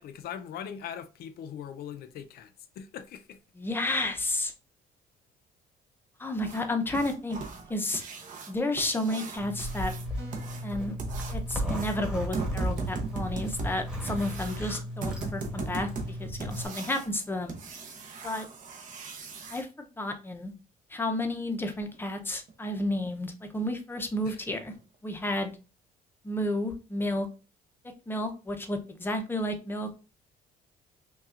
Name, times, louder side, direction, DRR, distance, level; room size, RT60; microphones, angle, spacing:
voice 1, 0.0-3.4 24.2-24.4, left 8 dB, 65° left, 0.6 m, -41 dB
voice 2, 3.6-4.5 6.2-7.4 7.7-8.0 8.5-9.9 10.6-11.0 11.3-17.5 18.2-18.5 19.5-20.5 20.9-24.7 25.0-25.5 26.2-27.3 28.1-30.0, left 1 dB, 15° left, 0.7 m, -31 dB
sound 1, 6.4-19.6 21.9-22.0 22.5-22.6 23.0-23.1 23.6-23.7 24.2-24.3 24.7-24.8 25.3-25.4, right 4 dB, 50° right, 0.9 m, -39 dB
Zipper (clothing), 9.4-16.7, equal, 5° right, 1.2 m, -35 dB
sound 2, 10.1-10.7, right 2 dB, 75° right, 1.6 m, -47 dB
5.5 x 2.3 x 2.5 m
cardioid pair, 110°, 17 cm